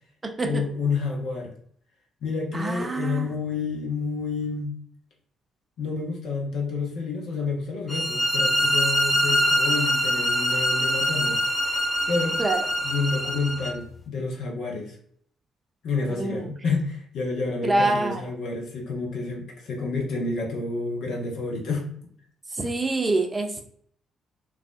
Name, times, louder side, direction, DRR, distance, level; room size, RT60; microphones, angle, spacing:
voice 1, 0.4-1.5 2.2-4.8 5.8-11.4 12.1-12.4 12.8-14.9 15.8-21.9 22.6-22.7, left 4 dB, 60° left, 0 dB, 0.7 m, -29 dB
voice 2, 2.5-3.3 12.4-12.6 16.1-16.5 17.6-18.2 22.6-23.6, right 2 dB, 25° right, 4 dB, 0.6 m, -25 dB
sound 1, 7.9-13.7, equal, 25° left, 0.8 m, -24 dB
3.5 x 2.4 x 2.4 m, 0.62 s
figure-of-eight pair, 45°, 0 cm